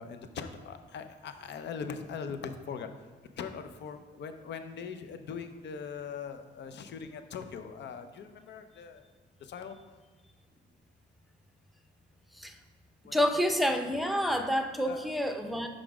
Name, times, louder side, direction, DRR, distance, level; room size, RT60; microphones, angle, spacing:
voice 1, 0.0-2.9 3.4-9.0 9.4-9.8 13.0-13.5 14.8-15.1, left 6 dB, 60° left, 8 dB, 0.7 m, -41 dB
voice 2, 13.1-15.7, equal, ahead, 6 dB, 0.7 m, -28 dB
5.9 x 5.0 x 4.8 m, 1.3 s
cardioid pair, 90°, 20 cm